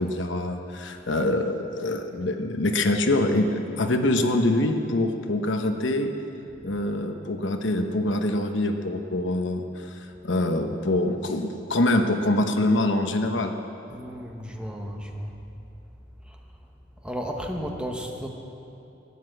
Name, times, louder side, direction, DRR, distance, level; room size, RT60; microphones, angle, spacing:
voice 1, 0.0-6.1 6.6-13.5, left 1 dB, 70° left, 6 dB, 1.0 m, -25 dB
voice 2, 13.9-15.3 16.3-16.4 17.0-18.3, equal, 5° right, 1 dB, 1.0 m, -33 dB
14.5 x 9.9 x 7.7 m, 2.8 s
head